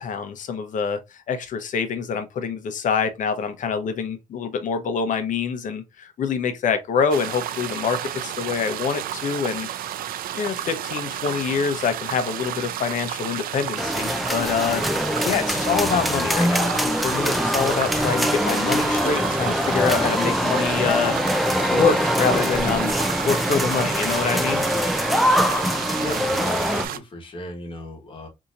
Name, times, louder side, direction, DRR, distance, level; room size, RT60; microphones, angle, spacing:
voice 1, 0.0-9.7 10.3-14.8 15.2-21.2 21.7-22.9 23.2-24.7, left 6 dB, 60° left, 0.8 m, -25 dB
sound 1, 7.1-27.0, right 11 dB, 75° right, 0.4 m, -31 dB
sound 2, 13.8-26.9, equal, ahead, 0.3 m, -23 dB
voice 2, 26.0-28.3, left 1 dB, 35° left, 1.3 m, -36 dB
4.1 x 2.8 x 2.4 m
cardioid pair, 120°, 15 cm